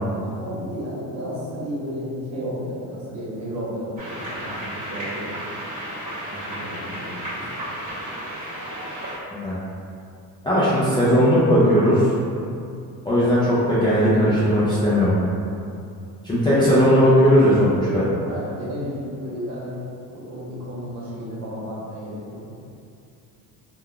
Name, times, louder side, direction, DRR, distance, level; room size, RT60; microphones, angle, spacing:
voice 1, 0.2-5.5 6.2-7.8 17.8-19.7 20.1-22.7, equal, 50° right, -7 dB, 1.0 m, -33 dB
sound 1, 4.0-9.2, right 1 dB, 20° right, 1.2 m, -33 dB
voice 2, 10.4-12.1 13.1-15.3 16.2-18.0, equal, 15° left, -11 dB, 0.3 m, -17 dB
3.5 x 2.2 x 2.3 m, 2.5 s
cardioid pair, 135°, 38 cm